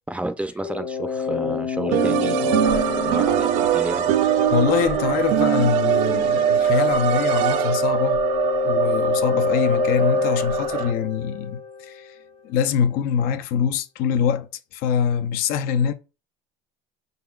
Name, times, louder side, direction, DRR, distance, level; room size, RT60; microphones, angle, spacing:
voice 1, 0.1-4.2, right 1 dB, 10° right, 0.5 m, -31 dB
sound 1, 0.6-12.2, left 5 dB, 35° left, 0.8 m, -28 dB
sound 2, 1.9-8.0, right 11 dB, 85° right, 0.4 m, -24 dB
sound 3, 2.6-10.9, right 8 dB, 55° right, 1.0 m, -24 dB
voice 2, 4.5-8.2 8.6-12.2 12.4-15.9, left 8 dB, 70° left, 0.5 m, -24 dB
5.5 x 4.0 x 2.4 m
supercardioid pair, 115°, 16 cm